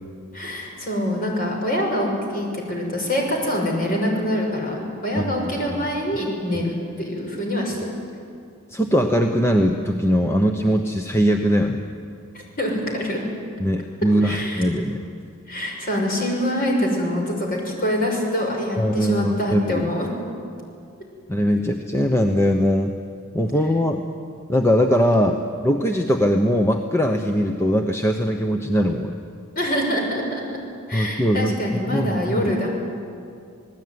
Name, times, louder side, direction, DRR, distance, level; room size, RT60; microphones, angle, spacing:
voice 1, 0.3-8.0 12.3-13.2 14.2-14.7 15.5-20.1 29.5-30.6 30.9-32.8, equal, 40° left, 0 dB, 6.1 m, -25 dB
voice 2, 8.7-11.8 13.6-15.0 18.8-19.9 21.3-22.9 23.3-24.0 24.5-25.4 25.6-29.2 30.9-31.5 31.9-32.5, equal, 10° left, 4 dB, 0.9 m, -21 dB
28.5 x 19.0 x 9.5 m, 2.4 s
head